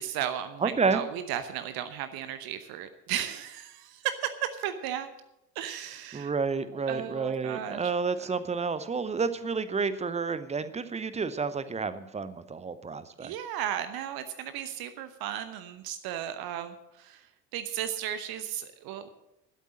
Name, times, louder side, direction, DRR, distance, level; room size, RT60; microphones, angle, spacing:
voice 1, 0.0-5.1 5.5-6.3 6.9-7.8 13.2-17.3 17.5-19.1, right 10 dB, 45° right, 11 dB, 0.9 m, -35 dB
voice 2, 0.6-1.0 6.1-13.3, right 4 dB, 15° right, 14 dB, 0.7 m, -30 dB
12.0 x 8.2 x 7.5 m, 0.87 s
figure-of-eight pair, 60°, 49 cm